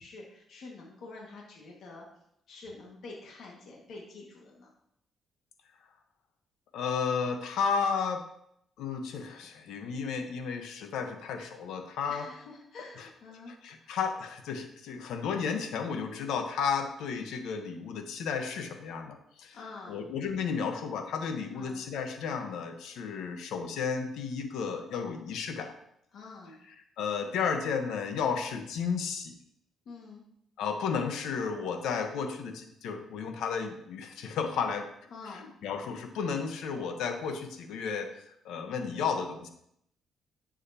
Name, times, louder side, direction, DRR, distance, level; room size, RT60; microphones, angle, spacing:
voice 1, 0.0-2.1 2.5-4.7 12.1-13.5 13.8-14.0 19.5-20.0 21.5-21.9 26.1-26.6 29.9-30.2 35.1-35.5, left 3 dB, 70° left, -1 dB, 1.9 m, -47 dB
voice 2, 6.7-8.2 8.8-12.3 13.0-13.1 13.5-19.6 19.9-25.8 27.0-29.3 30.6-34.9 35.6-39.5, left 6 dB, 85° left, 6 dB, 1.1 m, -33 dB
10.0 x 7.5 x 2.9 m, 0.74 s
cardioid pair, 90°, 0 cm